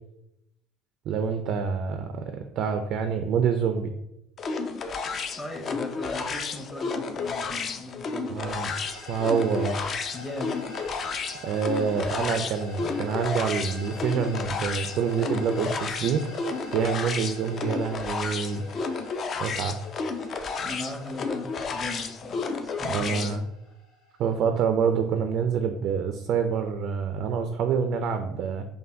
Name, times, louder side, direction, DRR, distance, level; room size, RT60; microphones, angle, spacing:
voice 1, 1.1-3.9 8.3-8.7 9.1-9.8 11.4-16.3 16.7-18.6 19.4-19.8 22.9-23.4 24.2-28.6, right 6 dB, 55° right, 7 dB, 0.3 m, -27 dB
sound 1, 4.4-23.4, left 4 dB, 40° left, 0.4 m, -32 dB
voice 2, 5.4-8.6 10.1-10.6 11.9-12.5 20.6-23.4, left 2 dB, 20° left, 2 dB, 0.8 m, -39 dB
sound 2, 8.7-24.3, left 2 dB, 75° left, 1.0 m, -46 dB
5.3 x 2.2 x 2.6 m, 0.86 s
supercardioid pair, 105°, 0 cm